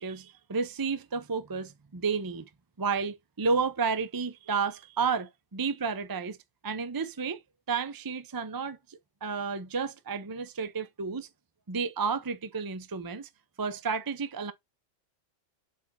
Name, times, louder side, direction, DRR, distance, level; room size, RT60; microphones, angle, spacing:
voice 1, 0.0-2.5 2.8-6.4 6.6-7.4 7.7-11.3 11.7-13.3 13.6-14.5, right 5 dB, 30° right, 0.4 m, -31 dB
7.3 x 4.2 x 4.1 m
omnidirectional pair, 1.3 m